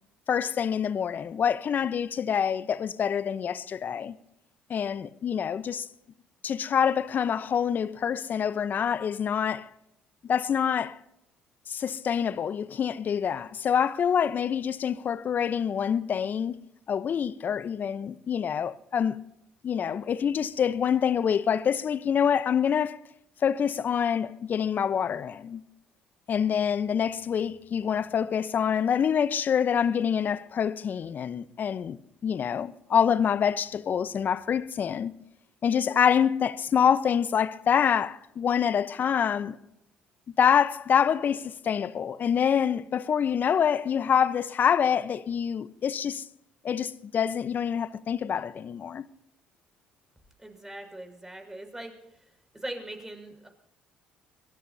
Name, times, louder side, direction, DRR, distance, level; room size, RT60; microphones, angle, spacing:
voice 1, 0.3-4.1 4.7-5.9 6.4-9.7 10.2-11.0 11.7-16.6 16.9-19.2 19.6-23.0 23.4-25.6 26.3-35.1 35.6-39.5 40.4-46.3 46.6-49.1, left 8 dB, 50° left, 0.9 m, -26 dB
voice 2, 50.4-51.9 52.5-53.5, right 1 dB, 10° right, 6.2 m, -40 dB
23.5 x 18.0 x 2.8 m
hypercardioid pair, 60°, 4 cm